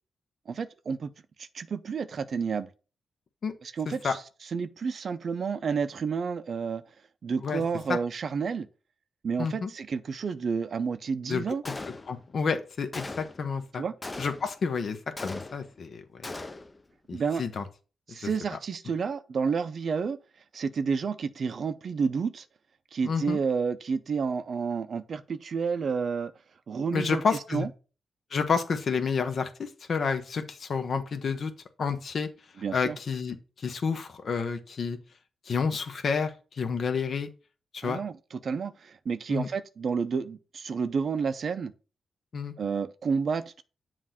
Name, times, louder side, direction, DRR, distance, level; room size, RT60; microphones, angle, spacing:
voice 1, 0.5-1.1 1.4-2.7 3.6-4.2 4.5-6.8 7.2-8.7 9.2-11.6 13.8-13.9 17.1-17.4 18.1-20.2 20.5-22.4 22.9-26.3 26.7-27.2 27.5-27.7 32.6-33.0 37.8-41.7 42.6-43.6, right 5 dB, 60° right, 0.5 m, -30 dB
voice 2, 9.4-9.7 11.3-11.4 12.1-13.8 14.2-16.3 17.1-17.6 18.2-18.6 23.0-23.4 26.9-27.7 28.3-31.5 31.8-32.3 32.7-35.0 35.5-37.3 37.7-38.0 39.3-39.5 42.3-42.5, left 5 dB, 60° left, 0.9 m, -30 dB
Gunshot gunfire, 11.7-12.4 12.9-13.5 14.0-14.6 15.2-15.8 16.2-16.8, left 2 dB, 30° left, 0.6 m, -39 dB
7.4 x 2.5 x 5.7 m
cardioid pair, 60°, 0 cm